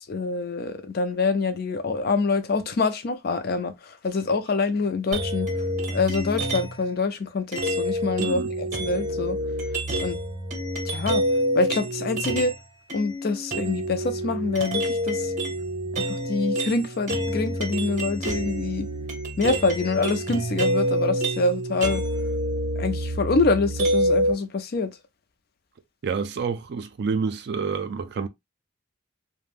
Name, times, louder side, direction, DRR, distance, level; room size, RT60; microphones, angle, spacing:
voice 1, 0.1-5.5 5.9-9.4 10.0-10.2 10.8-11.2 11.5-12.5 12.9-15.3 16.0-18.9 19.4-22.0 22.8-24.9, left 3 dB, 45° left, 0.4 m, -25 dB
sound 1, 5.1-6.9 7.5-12.6 12.9-24.3, right 1 dB, 35° right, 0.7 m, -27 dB
voice 2, 8.2-8.5 26.0-28.3, right 5 dB, 50° right, 0.3 m, -28 dB
2.4 x 2.1 x 3.3 m
head